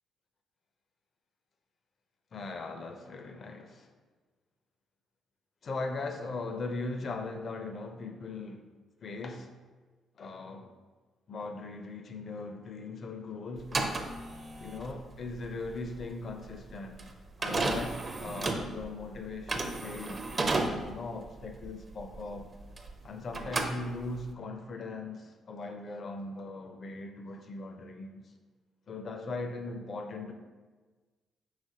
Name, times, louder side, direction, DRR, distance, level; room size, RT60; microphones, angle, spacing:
voice 1, 2.3-3.9 5.6-8.7 9.0-9.5 10.2-10.7 11.3-14.1 14.6-17.0 17.4-20.3 20.6-22.5 23.0-28.3 28.9-30.3, left 3 dB, 50° left, 0.5 m, -39 dB
sound 1, 13.6-23.0 23.3-24.3, right 2 dB, 35° right, 0.5 m, -34 dB
4.9 x 3.0 x 2.8 m
supercardioid pair, 70°, 0 cm